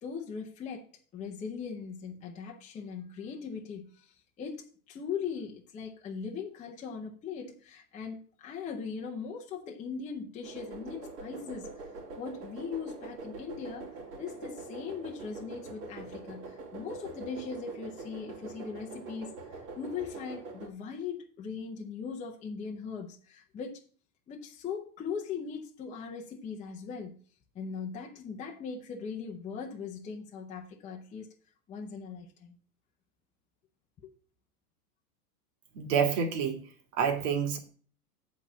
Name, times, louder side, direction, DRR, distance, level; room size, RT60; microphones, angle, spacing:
voice 1, 0.0-11.9 12.2-13.9 14.2-23.8 24.3-27.2 27.5-31.3 31.7-32.6 34.0-34.1, left 6 dB, 15° left, 0.7 m, -40 dB
sound 1, 10.4-20.7, right 3 dB, 75° right, 2.6 m, -44 dB
voice 2, 35.8-36.6 36.9-37.6, right 7 dB, 45° right, 2.0 m, -28 dB
8.2 x 4.3 x 7.1 m
hypercardioid pair, 130°, 48 cm